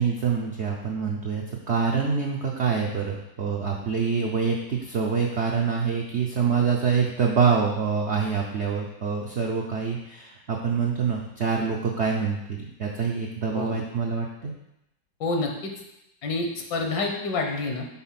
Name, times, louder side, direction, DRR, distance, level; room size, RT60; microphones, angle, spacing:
voice 1, 0.0-14.5, right 6 dB, 70° right, 0 dB, 0.6 m, -26 dB
voice 2, 15.2-15.7 16.2-17.9, left 3 dB, 70° left, 2 dB, 1.6 m, -28 dB
5.9 x 4.0 x 5.7 m, 0.85 s
omnidirectional pair, 2.0 m